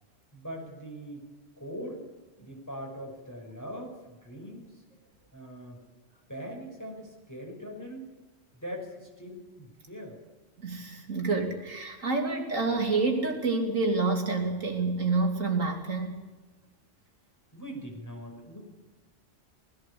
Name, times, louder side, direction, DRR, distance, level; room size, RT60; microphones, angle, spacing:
voice 1, 0.3-1.3 1.6-2.1 2.4-4.8 5.3-5.8 6.3-8.1 8.5-10.2 17.5-18.6, equal, 15° left, 0 dB, 5.8 m, -41 dB
voice 2, 10.6-16.2, right 3 dB, 85° right, 2 dB, 3.3 m, -28 dB
20.0 x 16.5 x 8.5 m, 1.2 s
omnidirectional pair, 1.3 m